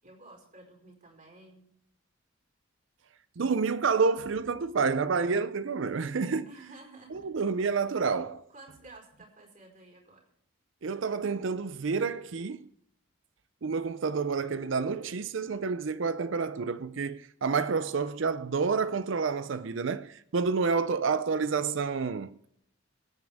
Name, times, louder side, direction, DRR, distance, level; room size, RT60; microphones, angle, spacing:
voice 1, 0.0-1.7 6.4-7.3 8.5-10.2, right 2 dB, 40° right, 5.0 m, -52 dB
voice 2, 3.4-6.5 7.1-8.5 10.8-12.7 13.6-22.5, right 5 dB, 70° right, 0.5 m, -29 dB
23.0 x 9.4 x 3.6 m
head